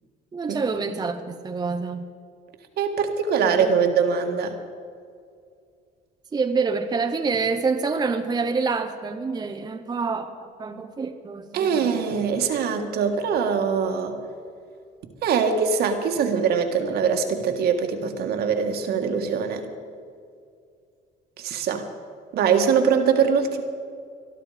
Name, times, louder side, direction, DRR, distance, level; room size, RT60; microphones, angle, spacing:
voice 1, 0.3-2.1 3.5-3.8 6.3-12.0, right 4 dB, 25° right, 6 dB, 0.8 m, -27 dB
voice 2, 2.8-4.5 11.5-14.2 15.2-19.7 21.4-21.9 22.3-23.6, right 6 dB, 70° right, 5 dB, 1.7 m, -22 dB
20.5 x 12.0 x 5.0 m, 2.3 s
cardioid pair, 110°, 17 cm